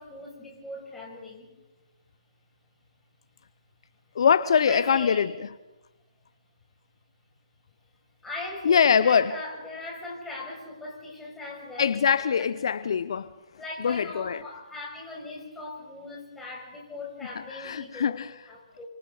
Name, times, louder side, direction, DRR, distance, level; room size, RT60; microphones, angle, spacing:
voice 1, 0.0-1.5 4.5-5.3 8.2-12.0 12.3-12.4 13.6-18.9, left 2 dB, 5° left, 6.4 m, -39 dB
voice 2, 4.2-5.3 8.6-9.3 11.8-13.3 13.8-14.4 17.5-18.3, left 7 dB, 55° left, 0.8 m, -23 dB
28.5 x 26.0 x 4.0 m
figure-of-eight pair, 140°, 3 cm